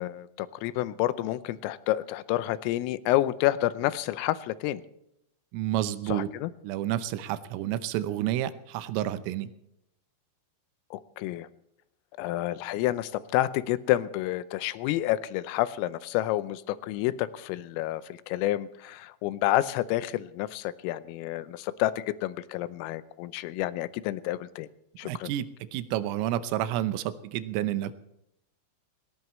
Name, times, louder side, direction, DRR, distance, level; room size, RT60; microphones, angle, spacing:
voice 1, 0.0-4.8 6.1-6.5 10.9-11.5 12.2-24.7 25.0-25.3, left 15 dB, 85° left, 15 dB, 3.3 m, -29 dB
voice 2, 5.5-6.3 6.6-9.5 25.0-27.9, right 13 dB, 85° right, 12 dB, 3.5 m, -30 dB
19.0 x 18.5 x 3.1 m, 0.81 s
omnidirectional pair, 5.9 m